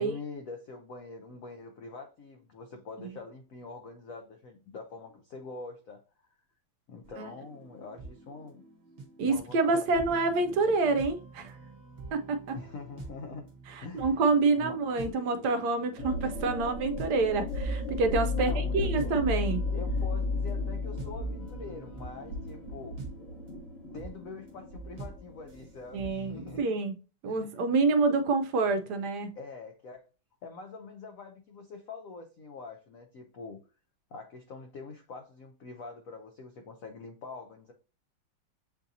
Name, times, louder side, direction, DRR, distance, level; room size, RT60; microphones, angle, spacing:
voice 1, 0.0-6.3 6.9-8.6 9.2-10.6 12.5-13.5 13.8-14.2 14.6-14.8 18.4-19.1 19.7-23.0 23.9-26.6 27.3-27.4 29.4-30.0 30.4-33.6 34.1-37.7, left 3 dB, 65° left, 0.8 m, -44 dB
sound 1, 7.0-26.6, right 3 dB, 50° right, 0.5 m, -47 dB
voice 2, 9.2-11.5 12.1-12.6 13.7-19.6 25.9-26.9 27.2-29.4, right 3 dB, 75° right, 1.0 m, -27 dB
sound 2, 16.0-26.0, left 2 dB, 40° left, 1.1 m, -34 dB
7.2 x 2.7 x 2.6 m
omnidirectional pair, 2.1 m